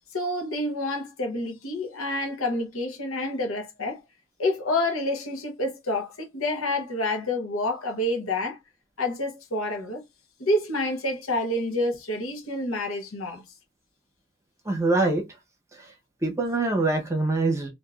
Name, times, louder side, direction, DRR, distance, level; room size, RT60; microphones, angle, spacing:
voice 1, 0.1-4.0 4.4-8.6 9.0-10.0 10.4-13.4, left 1 dB, 85° left, 1.0 m, -28 dB
voice 2, 14.6-15.2 15.7-15.9 16.2-17.7, right 2 dB, 15° right, 0.8 m, -24 dB
3.4 x 2.6 x 2.4 m
head